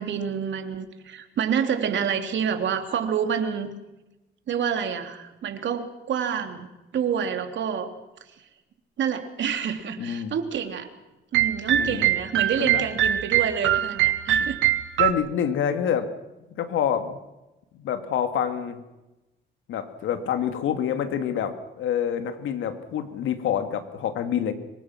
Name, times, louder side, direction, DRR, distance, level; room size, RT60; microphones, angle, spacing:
voice 1, 0.0-3.7 4.5-6.7 6.9-7.9 8.4-8.5 9.0-10.9 11.3-14.6, right 7 dB, 65° right, 6 dB, 3.2 m, -28 dB
voice 2, 10.0-10.3 11.7-12.1 12.5-12.8 14.4-14.5 15.0-16.1 16.6-17.2 17.7-18.8 19.7-24.5, left 8 dB, 80° left, 8 dB, 2.6 m, -27 dB
sound 1, 11.3-15.1, right 12 dB, 85° right, 1.4 m, -23 dB
26.0 x 24.0 x 6.1 m, 1.0 s
cardioid pair, 90°, 20 cm